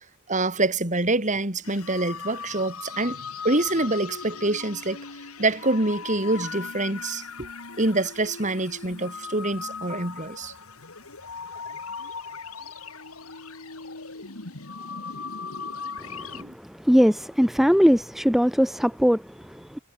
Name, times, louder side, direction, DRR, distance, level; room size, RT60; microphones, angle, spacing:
voice 1, 0.3-5.0 5.4-7.5 7.8-10.5 16.3-16.5, right 2 dB, 35° right, 4.2 m, -26 dB
sound 1, 1.6-16.4, left 5 dB, 80° left, 2.9 m, -38 dB
voice 2, 16.0-19.8, equal, ahead, 0.6 m, -21 dB
head